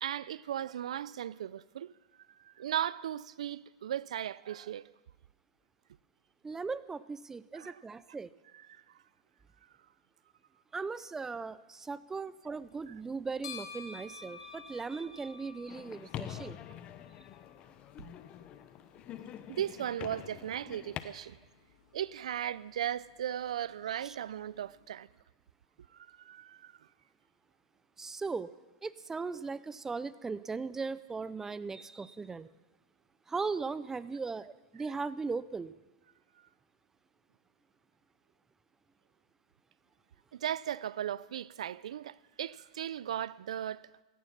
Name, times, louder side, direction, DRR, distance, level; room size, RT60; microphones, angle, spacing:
voice 1, 0.0-1.9 2.4-4.8 7.5-7.8 8.7-8.8 12.9-13.0 19.5-21.4 21.9-25.1 25.9-26.7 40.3-43.9, right 10 dB, 80° right, 0.4 m, -37 dB
voice 2, 6.4-8.3 10.7-16.6 24.0-24.2 28.0-28.5 28.8-32.5 33.3-35.7, right 4 dB, 15° right, 0.5 m, -38 dB
sound 1, 12.4-25.0, left 6 dB, 80° left, 3.8 m, -54 dB
sound 2, 15.7-21.0, left 11 dB, 35° left, 0.9 m, -45 dB
17.0 x 13.5 x 6.0 m
hypercardioid pair, 115°, 3 cm